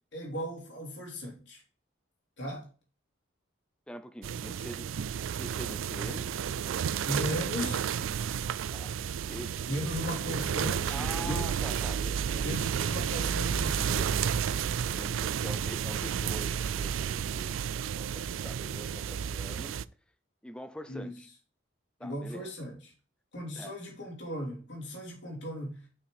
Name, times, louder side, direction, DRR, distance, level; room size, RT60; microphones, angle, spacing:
voice 1, 0.1-1.6 2.4-2.7 7.0-7.9 9.7-11.5 12.4-14.1 20.9-21.1 22.0-22.9 23.3-25.8, equal, 60° left, 3.3 m, -37 dB
voice 2, 3.9-4.9 5.4-6.3 6.6-7.3 8.7-10.0 10.9-12.9 14.9-17.6 17.9-19.8 20.4-21.3 22.0-22.5 23.6-23.8, equal, 5° left, 0.6 m, -45 dB
sound 1, 4.2-19.8, right 8 dB, 85° right, 0.4 m, -32 dB
6.5 x 5.9 x 4.8 m
head